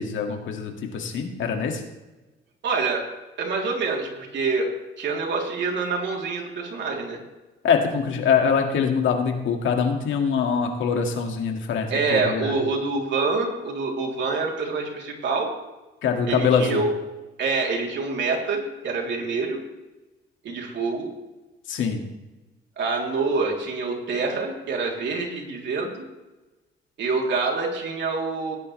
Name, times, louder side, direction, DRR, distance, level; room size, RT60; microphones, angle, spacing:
voice 1, 0.0-1.8 7.6-12.5 16.0-16.8 21.7-22.0, left 6 dB, 75° left, 3 dB, 2.1 m, -23 dB
voice 2, 2.6-3.0 3.4-4.7 5.0-7.2 11.9-15.5 16.3-16.9 17.4-19.6 20.4-21.1 22.8-26.1 27.0-28.6, right 4 dB, 65° right, 0 dB, 3.4 m, -26 dB
18.0 x 10.0 x 3.3 m, 1.1 s
cardioid pair, 90°, 20 cm